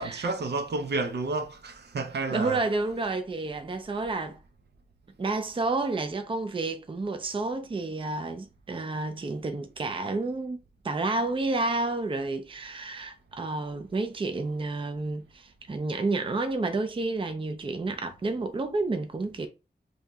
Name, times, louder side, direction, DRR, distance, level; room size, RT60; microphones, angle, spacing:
voice 1, 0.0-2.6, right 3 dB, 75° right, 0.6 m, -30 dB
voice 2, 2.3-4.4 5.2-10.6 10.8-19.5, right 3 dB, 30° right, 0.5 m, -30 dB
3.0 x 2.7 x 3.4 m
wide cardioid pair, 115°, 17 cm